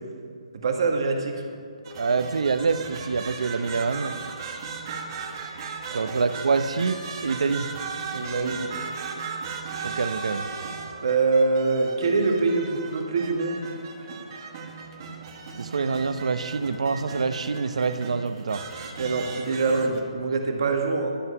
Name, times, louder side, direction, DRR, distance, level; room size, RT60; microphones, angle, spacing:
voice 1, 0.6-1.4 5.9-6.1 8.1-8.6 11.0-13.6 19.0-21.2, right 3 dB, 50° right, 3 dB, 1.5 m, -24 dB
sound 1, 1.8-20.0, right 5 dB, 35° right, 1.3 m, -37 dB
voice 2, 2.0-4.1 5.9-7.7 9.8-10.5 15.6-18.6, right 4 dB, 75° right, 11 dB, 0.7 m, -26 dB
12.0 x 7.7 x 5.5 m, 2.3 s
hypercardioid pair, 165°, 3 cm